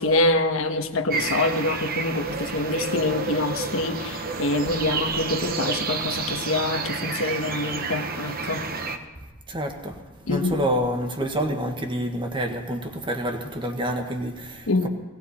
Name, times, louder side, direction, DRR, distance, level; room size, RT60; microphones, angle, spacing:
voice 1, 0.0-8.8 10.3-10.6 14.7-14.9, left 2 dB, 80° left, 6 dB, 1.3 m, -25 dB
sound 1, 1.1-9.0, right 4 dB, 45° right, 1.0 m, -30 dB
voice 2, 9.5-14.9, equal, 25° right, 4 dB, 1.5 m, -28 dB
18.0 x 18.0 x 4.2 m, 1.3 s
head